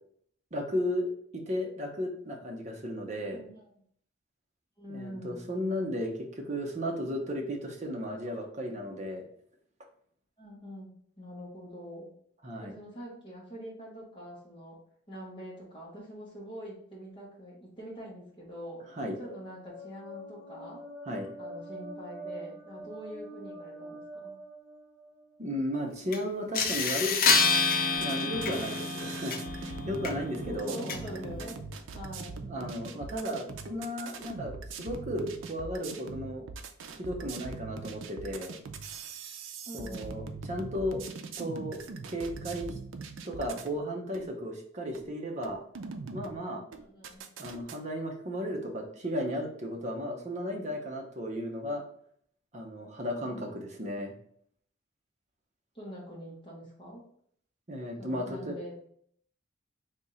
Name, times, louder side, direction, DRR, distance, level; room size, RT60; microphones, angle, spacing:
voice 1, 0.5-1.1 1.5-3.4 4.9-9.2 12.4-12.7 19.0-19.1 21.1-21.3 25.4-27.2 28.0-30.8 32.5-36.4 36.9-38.5 39.7-41.0 41.4-42.7 43.2-45.6 46.1-46.6 47.4-51.8 52.5-54.1 57.7-58.6, equal, 35° right, 1 dB, 0.7 m, -34 dB
voice 2, 3.3-3.8 4.8-5.4 10.4-12.1 12.6-14.8 15.1-18.8 19.2-20.8 21.4-24.3 30.5-31.6 31.9-32.4 39.6-40.2 46.7-47.2 53.2-53.5 55.7-57.0 58.0-58.8, equal, 25° left, -5 dB, 1.3 m, -44 dB
sound 1, 18.7-25.4, right 1 dB, 10° right, 1.5 m, -45 dB
sound 2, 26.1-26.2 26.5-31.5, left 4 dB, 45° left, 0.5 m, -29 dB
sound 3, 27.9-43.8 44.1-44.3 44.9-45.1 45.4-46.4 46.7-47.8, right 4 dB, 80° right, 0.4 m, -42 dB
3.5 x 2.8 x 4.0 m, 0.64 s
head